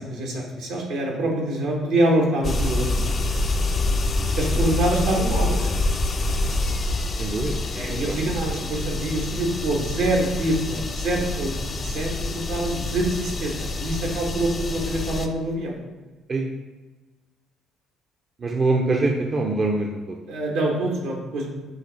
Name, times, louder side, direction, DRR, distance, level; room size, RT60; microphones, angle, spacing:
voice 1, 0.0-2.9 4.3-5.7 7.7-13.5 13.8-15.8 20.3-21.5, right 1 dB, 80° right, -1 dB, 1.1 m, -25 dB
sound 1, 2.4-15.3, left 2 dB, 40° left, 0.4 m, -26 dB
voice 2, 7.2-8.2 16.3-16.5 18.4-20.2, right 2 dB, 40° right, 1 dB, 0.5 m, -24 dB
6.3 x 2.5 x 3.1 m, 1.2 s
hypercardioid pair, 55°, 0 cm